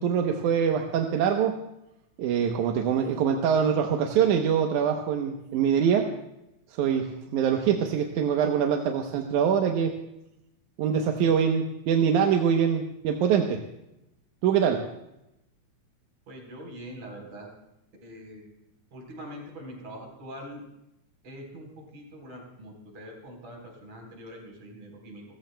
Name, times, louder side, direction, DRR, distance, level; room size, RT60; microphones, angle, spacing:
voice 1, 0.0-1.6 2.2-6.1 6.7-9.9 10.8-13.6 14.4-14.9, right 7 dB, 85° right, 3 dB, 2.4 m, -24 dB
voice 2, 16.3-17.5 18.0-18.4 18.9-20.6 21.2-25.2, equal, 60° right, 1 dB, 5.1 m, -43 dB
30.0 x 15.0 x 2.2 m, 0.87 s
omnidirectional pair, 3.4 m